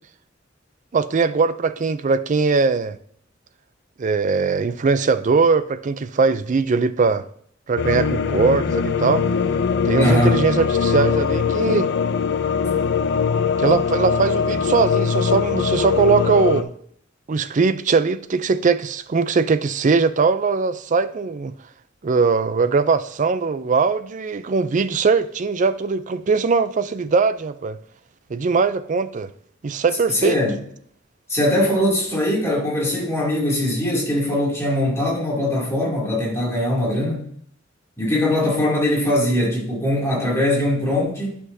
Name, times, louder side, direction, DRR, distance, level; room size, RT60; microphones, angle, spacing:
voice 1, 0.9-3.0 4.0-7.3 7.7-9.2 9.8-11.9 13.6-16.7 17.3-21.5 22.0-27.8 28.3-29.3 29.6-30.4, right 4 dB, 40° right, 0.4 m, -20 dB
sound 1, 7.8-16.6, left 6 dB, 60° left, 0.4 m, -21 dB
voice 2, 9.9-10.4 30.1-30.6 31.3-37.3 38.0-41.4, left 1 dB, 15° left, 2.6 m, -21 dB
11.0 x 6.0 x 2.7 m
head